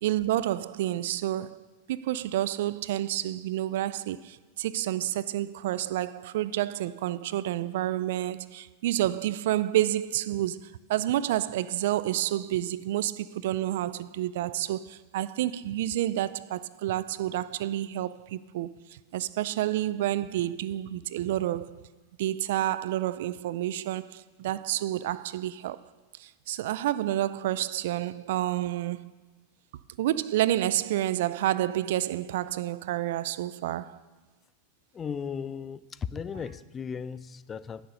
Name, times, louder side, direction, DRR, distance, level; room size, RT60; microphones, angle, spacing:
voice 1, 0.0-21.8 22.2-25.9 26.2-29.1 30.0-34.0, right 13 dB, 70° right, 0.3 m, -29 dB
voice 2, 34.9-35.8 36.1-37.9, left 6 dB, 25° left, 0.3 m, -36 dB
10.0 x 6.7 x 5.4 m
hypercardioid pair, 115°, 0 cm